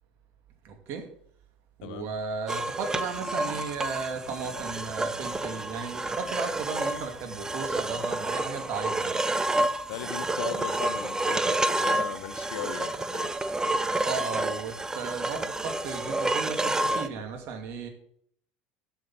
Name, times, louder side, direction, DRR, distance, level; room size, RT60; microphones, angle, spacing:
voice 1, 0.6-1.1 1.8-9.2 14.0-17.9, right 5 dB, 60° right, 5 dB, 2.4 m, -35 dB
sound 1, 2.5-17.1, right 2 dB, 15° right, 0.7 m, -29 dB
voice 2, 9.9-13.3, left 10 dB, 80° left, 10 dB, 0.9 m, -38 dB
7.5 x 7.1 x 7.4 m, 0.67 s
supercardioid pair, 95°, 5 cm